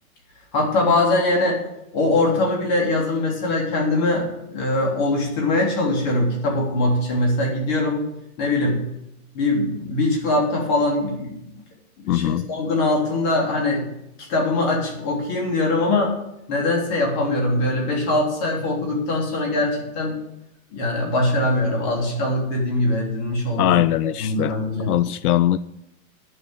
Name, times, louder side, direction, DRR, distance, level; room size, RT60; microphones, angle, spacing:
voice 1, 0.5-1.6 1.9-8.0 8.4-8.9 9.3-11.6 12.0-13.9 14.3-16.1 16.5-20.2 20.7-23.8 24.2-24.9, left 2 dB, 30° left, -1 dB, 3.1 m, -22 dB
voice 2, 12.1-12.5 23.6-24.6 24.9-25.6, left 13 dB, 90° left, 16 dB, 0.6 m, -20 dB
9.8 x 6.6 x 8.8 m, 0.84 s
supercardioid pair, 175°, 44 cm